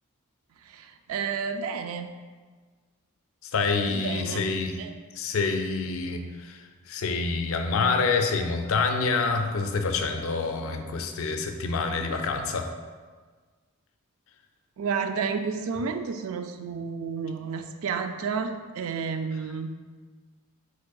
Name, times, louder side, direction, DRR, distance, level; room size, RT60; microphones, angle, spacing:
voice 1, 0.6-2.1 3.9-4.5 4.8-4.9 14.8-19.7, right 5 dB, 70° right, 8 dB, 0.3 m, -31 dB
voice 2, 3.4-4.8 5.1-12.7, left 4 dB, 65° left, 6 dB, 0.4 m, -27 dB
5.1 x 3.9 x 2.3 m, 1.5 s
head